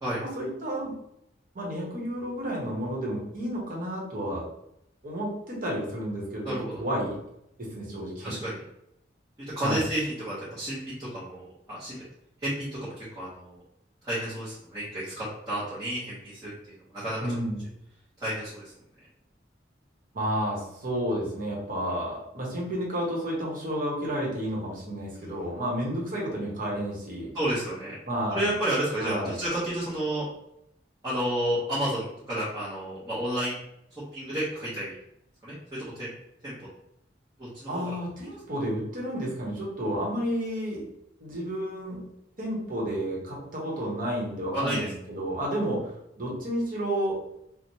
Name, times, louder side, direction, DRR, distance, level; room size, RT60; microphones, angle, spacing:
voice 1, 0.2-0.9 1.5-4.4 5.0-7.2 7.6-8.3 9.6-9.8 17.2-17.6 20.1-27.3 28.1-28.5 29.0-29.4 37.7-40.8 41.2-42.0 42.4-45.9 46.2-47.2, equal, 50° right, -3 dB, 1.0 m, -31 dB
voice 2, 6.4-6.8 8.2-8.6 9.6-12.0 12.4-13.6 14.0-16.5 16.9-17.2 18.2-18.7 25.2-25.4 27.3-27.9 28.3-30.3 31.0-33.5 34.1-34.9 35.4-36.1 36.4-36.5 37.4-37.9 44.5-44.9, right 1 dB, 20° right, -10 dB, 0.8 m, -31 dB
3.2 x 2.1 x 2.7 m, 0.79 s
head